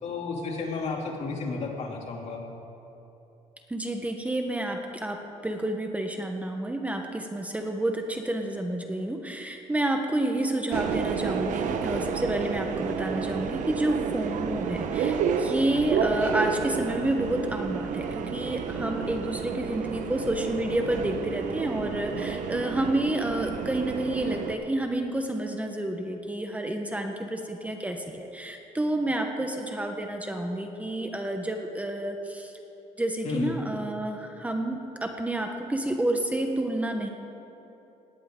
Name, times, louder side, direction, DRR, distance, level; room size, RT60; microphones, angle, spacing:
voice 1, 0.0-2.4 33.2-33.6, left 4 dB, 55° left, -1 dB, 2.9 m, -32 dB
voice 2, 3.7-32.5 33.0-37.1, right 1 dB, 10° right, 4 dB, 1.2 m, -29 dB
Subway metro underground, 10.7-24.5, right 6 dB, 70° right, 1.1 m, -30 dB
18.0 x 18.0 x 3.8 m, 3.0 s
cardioid pair, 110°, 13 cm